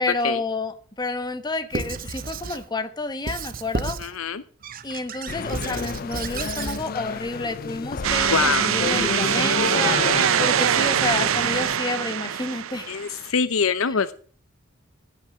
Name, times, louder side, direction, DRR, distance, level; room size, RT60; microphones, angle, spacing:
voice 1, 0.0-4.0 4.8-10.1 10.4-12.9, left 3 dB, 20° left, 1.1 m, -29 dB
Squeak / Writing, 1.7-2.6 3.3-4.1 4.6-6.8, right 4 dB, 45° right, 0.8 m, -32 dB
voice 2, 4.0-4.4 8.3-8.7 12.9-14.1, left 6 dB, 90° left, 0.7 m, -24 dB
sound 1, 5.3-11.8, left 5 dB, 45° left, 0.5 m, -30 dB
sound 2, 8.0-13.2, right 9 dB, 80° right, 0.5 m, -23 dB
15.5 x 6.1 x 6.1 m
head